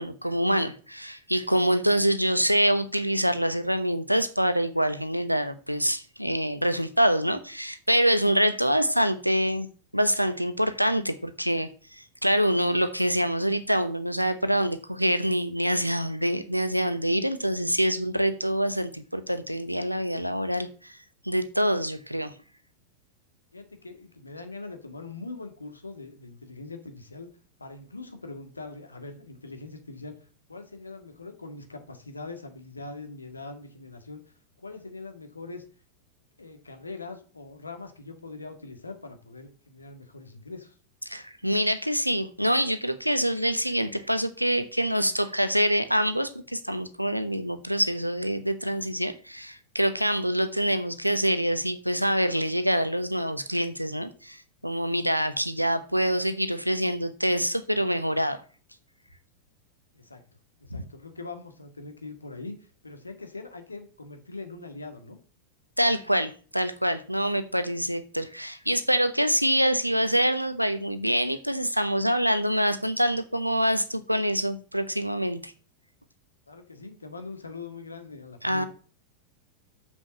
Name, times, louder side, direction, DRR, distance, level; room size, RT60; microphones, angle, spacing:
voice 1, 0.0-9.7 9.9-20.9 21.2-22.3 41.1-54.4 54.6-58.4 60.7-60.8 65.8-75.5 78.4-78.7, equal, 90° right, 11 dB, 0.9 m, -25 dB
voice 2, 23.5-27.3 27.6-30.2 30.5-34.2 34.6-35.6 36.4-40.7 59.9-60.2 60.6-65.2 76.5-78.7, left 3 dB, 80° left, 7 dB, 1.8 m, -42 dB
7.2 x 6.3 x 7.4 m, 0.40 s
figure-of-eight pair, 90°, 0 cm